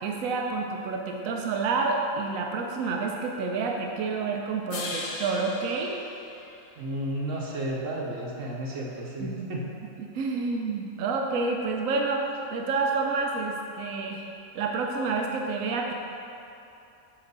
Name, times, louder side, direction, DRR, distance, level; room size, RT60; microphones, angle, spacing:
voice 1, 0.0-6.0 9.2-9.5 10.1-14.3 14.5-15.9, right 4 dB, 90° right, 1 dB, 1.0 m, -29 dB
sound 1, 4.7-7.0, left 2 dB, 75° left, 1.3 m, -38 dB
voice 2, 6.8-9.7, right 1 dB, 70° right, -4 dB, 1.2 m, -32 dB
7.3 x 3.9 x 6.7 m, 2.8 s
omnidirectional pair, 1.4 m